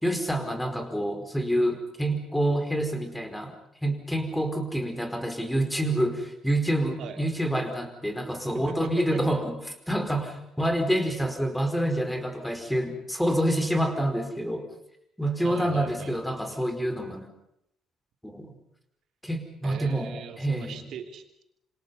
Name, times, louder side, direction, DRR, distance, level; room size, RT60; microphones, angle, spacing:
voice 1, 0.0-3.5 3.8-9.6 9.9-14.6 15.2-17.3 18.2-18.5 19.2-20.7, right 1 dB, 5° left, 6 dB, 4.7 m, -27 dB
voice 2, 8.5-9.2 15.4-16.6 19.6-21.4, right 7 dB, 55° right, 7 dB, 2.9 m, -41 dB
27.0 x 26.5 x 5.5 m, 0.77 s
figure-of-eight pair, 50°, 0 cm